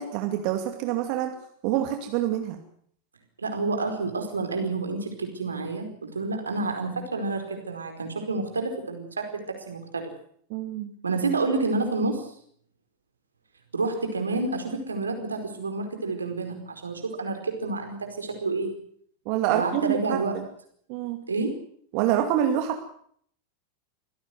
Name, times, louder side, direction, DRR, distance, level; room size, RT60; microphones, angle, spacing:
voice 1, 0.0-1.3 1.6-2.6 10.5-10.9 19.3-20.2 20.9-21.2 21.9-22.8, right 11 dB, 45° right, 5 dB, 2.5 m, -26 dB
voice 2, 3.4-10.1 11.0-12.3 13.7-18.7 19.5-20.3 21.3-21.5, right 3 dB, 75° right, 5 dB, 4.8 m, -29 dB
25.0 x 17.0 x 7.9 m, 0.63 s
figure-of-eight pair, 90°, 0 cm